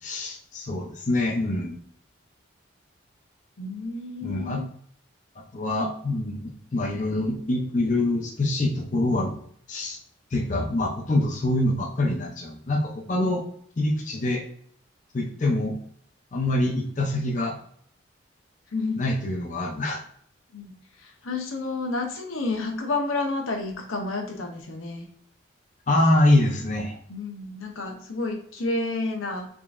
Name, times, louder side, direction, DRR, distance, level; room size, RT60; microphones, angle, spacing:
voice 1, 0.0-1.8 4.2-4.6 5.4-9.4 9.7-10.0 10.3-13.4 13.8-14.4 15.1-15.8 16.3-17.6 19.0-20.0 25.9-27.0, left 1 dB, 40° left, 0 dB, 0.5 m, -25 dB
voice 2, 3.6-4.7 13.1-13.3 18.7-19.1 20.5-25.1 27.1-29.5, left 3 dB, 90° left, 3 dB, 0.8 m, -30 dB
3.7 x 3.4 x 2.5 m, 0.62 s
head